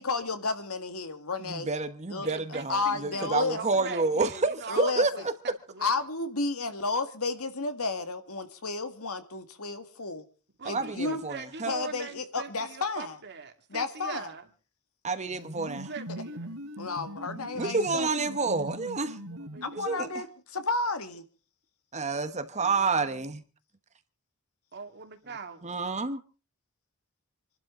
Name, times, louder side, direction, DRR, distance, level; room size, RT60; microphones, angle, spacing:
voice 1, 0.0-1.7 2.1-2.3 2.7-3.6 4.7-5.0 5.8-10.2 10.7-11.2 11.7-13.1 13.7-14.3 16.8-18.1 19.6-20.3 20.5-21.2, left 3 dB, 70° left, 1.9 m, -32 dB
voice 2, 1.4-5.3 10.6-11.7 15.0-15.9 17.5-19.2 19.7-20.1 21.9-23.4 25.6-26.2, right 3 dB, 30° right, 1.2 m, -29 dB
voice 3, 2.1-6.0 10.6-14.5 15.9-16.6 19.2-20.1 22.6-23.3 24.7-25.8, right 4 dB, 50° right, 2.3 m, -42 dB
sound 1, 15.3-20.2, right 1 dB, 90° right, 3.5 m, -41 dB
27.5 x 12.0 x 3.8 m
head